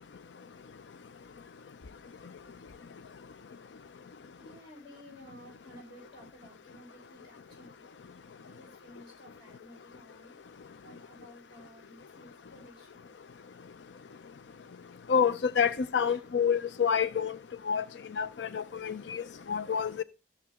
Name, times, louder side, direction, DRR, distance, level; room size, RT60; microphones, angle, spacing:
voice 1, 4.4-7.8 8.4-10.4 10.8-13.1 15.7-16.2, equal, 25° left, 6.5 m, -54 dB
voice 2, 15.1-17.4 17.7-17.8 18.2-20.0, left 7 dB, 90° left, 0.5 m, -28 dB
15.0 x 7.2 x 3.5 m
head